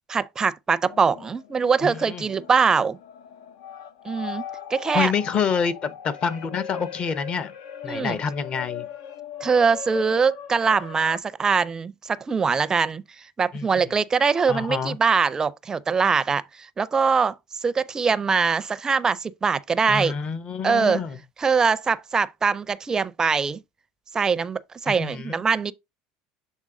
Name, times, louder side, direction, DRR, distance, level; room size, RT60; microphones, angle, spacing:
voice 1, 0.1-3.0 4.0-4.4 4.7-5.1 7.9-8.2 9.4-17.4 17.6-20.1 20.6-21.0 21.4-23.6 24.1-25.7, right 5 dB, 25° right, 0.4 m, -22 dB
reverse guitar, 0.9-11.2, left 9 dB, 85° left, 0.7 m, -39 dB
voice 2, 1.8-2.3 4.9-7.5 7.8-8.9 13.5-13.9 14.5-15.0 19.9-21.2 24.9-25.4, left 6 dB, 40° left, 0.8 m, -27 dB
7.4 x 3.6 x 3.7 m
supercardioid pair, 100°, 3 cm